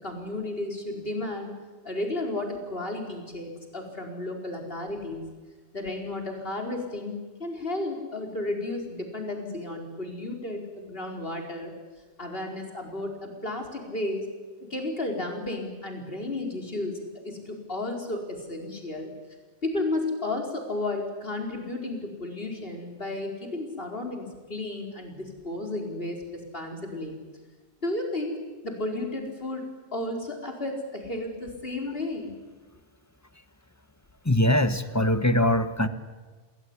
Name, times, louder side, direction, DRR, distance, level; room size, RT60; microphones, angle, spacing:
voice 1, 0.0-1.5 1.8-5.2 5.7-11.7 12.2-14.3 14.6-19.1 19.6-27.2 27.8-28.3 28.6-29.7 29.9-32.3, left 2 dB, 55° left, 2 dB, 5.0 m, -33 dB
voice 2, 34.2-35.9, left 1 dB, 15° left, 10 dB, 1.5 m, -22 dB
29.0 x 20.5 x 9.9 m, 1.3 s
omnidirectional pair, 1.2 m